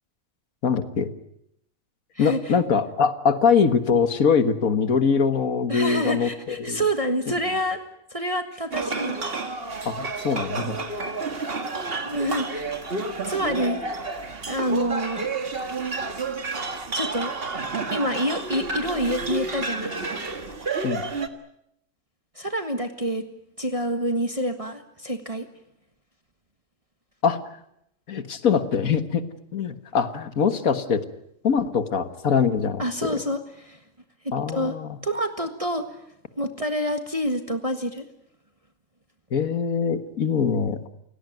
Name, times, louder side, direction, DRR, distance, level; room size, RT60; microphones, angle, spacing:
voice 1, 0.6-1.1 2.2-6.8 9.9-10.8 20.8-21.1 27.2-27.4 28.1-29.2 29.5-31.0 31.4-33.2 34.3-35.0 39.3-40.9, left 6 dB, 90° left, 10 dB, 1.9 m, -23 dB
voice 2, 2.1-2.5 5.7-7.8 8.1-9.5 12.0-12.7 13.2-13.8 14.4-15.3 16.9-17.3 17.9-20.2 22.3-23.2 23.6-25.5 32.8-33.8 34.2-34.7 35.0-35.8 36.4-38.0, equal, 25° right, 6 dB, 1.6 m, -27 dB
sound 1, 8.7-21.3, right 3 dB, 45° right, 1.9 m, -30 dB
29.0 x 17.5 x 9.2 m, 0.79 s
omnidirectional pair, 1.4 m